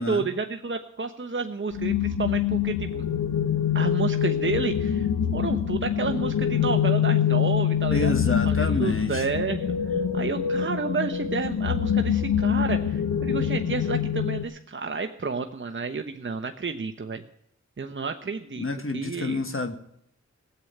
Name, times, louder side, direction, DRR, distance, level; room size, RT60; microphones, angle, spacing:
voice 1, 0.0-3.1 3.7-8.2 8.4-17.2 17.8-18.7 18.9-19.4, right 4 dB, 40° right, 6 dB, 1.0 m, -30 dB
sound 1, 1.7-14.4, left 8 dB, 90° left, 0.9 m, -25 dB
voice 2, 7.9-9.2 18.6-19.7, left 3 dB, 45° left, 7 dB, 1.7 m, -28 dB
15.5 x 8.1 x 9.2 m, 0.71 s
cardioid pair, 45°, 30 cm